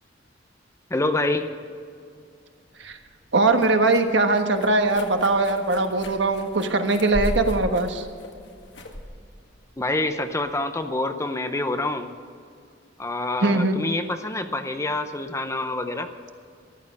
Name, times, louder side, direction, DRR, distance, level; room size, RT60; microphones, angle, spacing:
voice 1, 0.9-1.5 9.8-12.1 13.0-16.1, left 2 dB, 15° left, 8 dB, 0.7 m, -26 dB
sound 1, 2.8-10.6, equal, 65° left, 1.8 m, -36 dB
voice 2, 3.3-8.1 13.4-13.8, right 2 dB, 70° right, 6 dB, 1.3 m, -21 dB
14.0 x 12.0 x 6.5 m, 2.4 s
head